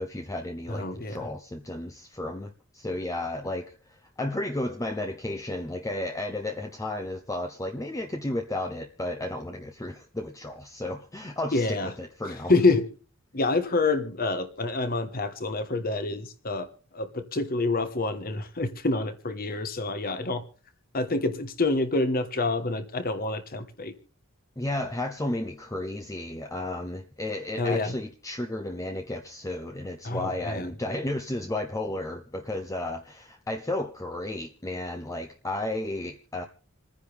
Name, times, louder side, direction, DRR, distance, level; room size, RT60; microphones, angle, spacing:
voice 1, 0.0-12.5 24.6-36.5, left 1 dB, 15° left, 0.8 m, -33 dB
voice 2, 0.7-1.3 11.5-11.9 12.5-12.9 13.3-16.7 16.9-20.4 20.9-23.9 27.6-27.9 30.0-30.7, left 3 dB, 45° left, 1.4 m, -27 dB
27.5 x 10.0 x 3.5 m
head